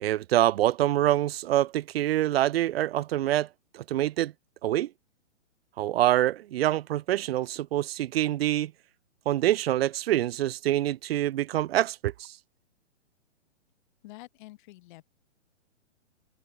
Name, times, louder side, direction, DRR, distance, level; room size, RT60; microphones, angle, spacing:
voice 1, 0.0-3.5 3.7-4.3 4.6-4.9 5.8-8.7 9.3-12.4, right 13 dB, 55° right, 0.5 m, -25 dB
voice 2, 14.0-15.0, left 19 dB, 40° left, 1.9 m, -47 dB
hypercardioid pair, 130°, 36 cm